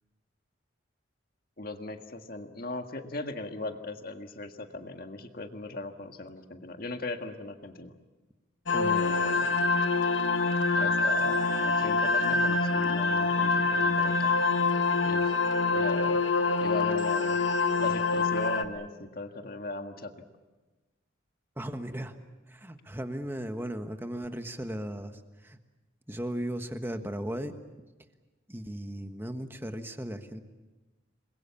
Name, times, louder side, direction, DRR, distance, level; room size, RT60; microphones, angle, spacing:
voice 1, 1.6-7.9 8.9-9.7 10.8-14.3 15.0-15.3 15.7-16.2 16.6-17.4 17.8-20.1, left 2 dB, 50° left, 5 dB, 1.7 m, -38 dB
sound 1, 8.7-18.6, left 3 dB, 75° left, 1.4 m, -25 dB
voice 2, 8.7-9.0 21.6-22.2 22.5-25.6 26.1-27.5 28.5-30.4, right 1 dB, 10° right, 7 dB, 1.4 m, -36 dB
28.0 x 21.5 x 7.2 m, 1.2 s
head